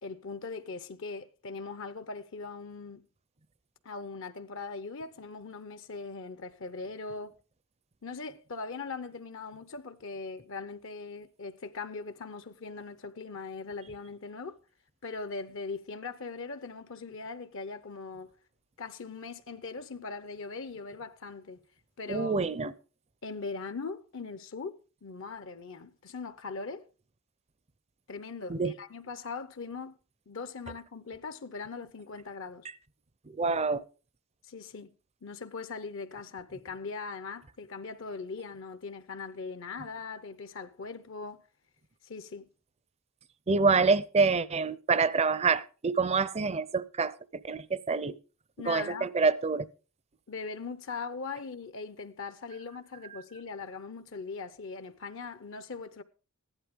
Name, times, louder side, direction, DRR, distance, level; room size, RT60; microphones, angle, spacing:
voice 1, 0.0-3.1 3.8-7.3 8.0-14.6 15.0-18.3 18.8-21.6 22.0-22.7 23.2-26.9 28.1-30.0 30.3-32.7 34.4-34.9 35.2-41.4 42.0-42.5 48.6-49.1 50.3-56.0, left 4 dB, 60° left, 0.7 m, -40 dB
voice 2, 22.1-22.7 28.5-28.7 33.3-33.8 43.5-47.1 47.5-48.2 48.6-49.7, right 4 dB, 30° right, 0.5 m, -26 dB
15.0 x 11.5 x 3.6 m
head